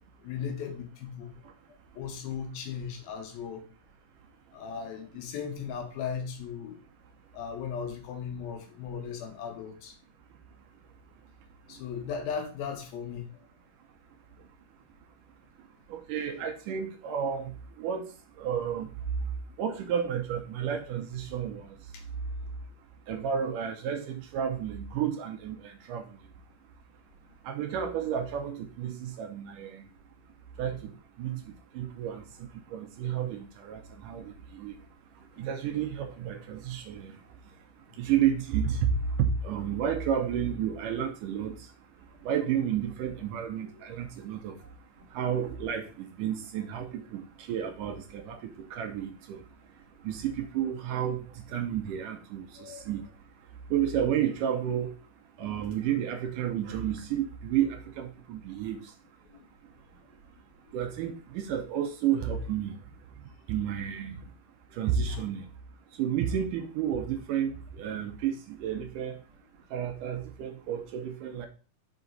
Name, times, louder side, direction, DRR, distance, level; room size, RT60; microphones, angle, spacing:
voice 1, 0.2-1.3 1.7-3.6 4.5-6.8 7.3-9.9 11.7-13.3 43.7-43.9 44.6-44.7 52.6-52.9 59.3-59.5 60.6-60.7 65.1-65.2, left 7 dB, 90° left, 3.0 m, -37 dB
voice 2, 15.9-18.1 18.4-18.9 19.6-21.8 23.1-26.1 27.5-29.8 30.6-31.4 31.7-32.2 32.7-34.8 35.4-37.1 38.0-41.6 42.2-44.5 45.1-49.4 50.0-51.2 51.5-53.0 53.7-54.9 55.4-58.8 60.7-62.8 63.5-64.2 64.7-65.4 66.0-69.2 69.7-71.5, right 9 dB, 75° right, 2.1 m, -31 dB
5.9 x 4.9 x 3.9 m
omnidirectional pair, 4.2 m